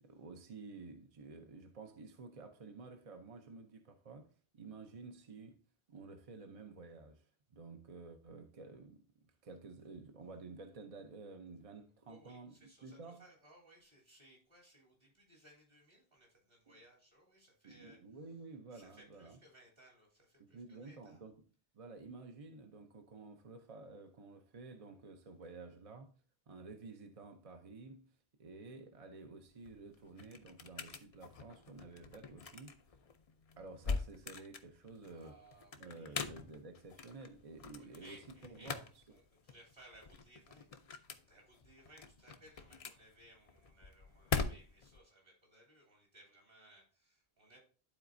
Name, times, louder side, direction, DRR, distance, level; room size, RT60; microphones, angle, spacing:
voice 1, 0.0-5.6 5.9-7.3 7.5-13.2 17.6-19.4 20.4-21.4 21.7-26.1 26.5-32.8 33.6-35.4 35.8-38.2 38.5-38.8, right 3 dB, 40° right, 0.6 m, -52 dB
voice 2, 12.1-18.0 18.7-21.3 35.0-36.4 37.7-40.7 41.2-47.6, right 1 dB, 60° right, 3.1 m, -62 dB
sound 1, 29.5-45.0, left 5 dB, 45° left, 0.5 m, -44 dB
12.0 x 4.1 x 2.5 m
omnidirectional pair, 1.0 m